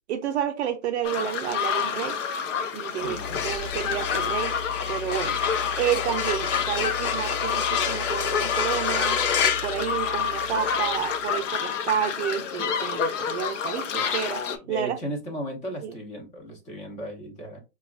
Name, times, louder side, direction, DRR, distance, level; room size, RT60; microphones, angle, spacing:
voice 1, 0.1-2.2 2.7-4.5 4.9-9.2 9.6-15.0 15.8-15.9, right 9 dB, 50° right, 0.5 m, -30 dB
sound 1, 1.0-14.6, left 7 dB, 60° left, 0.7 m, -29 dB
voice 2, 3.0-3.4 14.5-17.6, right 1 dB, 15° left, 0.7 m, -36 dB
sound 2, 3.1-10.6, left 7 dB, 80° left, 0.9 m, -29 dB
4.7 x 2.3 x 2.3 m
hypercardioid pair, 140°, 44 cm